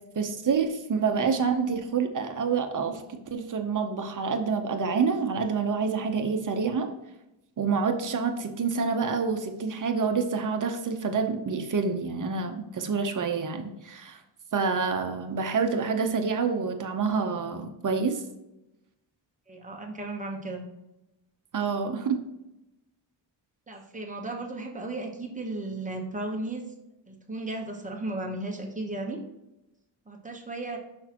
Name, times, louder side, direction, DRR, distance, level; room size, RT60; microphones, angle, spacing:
voice 1, 0.2-6.9 7.6-14.2 14.5-18.2 21.5-22.2, right 5 dB, 40° right, 5 dB, 0.8 m, -27 dB
voice 2, 19.5-20.6 23.7-26.6 27.1-29.2 30.1-30.8, right 2 dB, 15° right, 1 dB, 1.0 m, -35 dB
6.4 x 6.0 x 2.9 m, 0.92 s
wide cardioid pair, 175°, 47 cm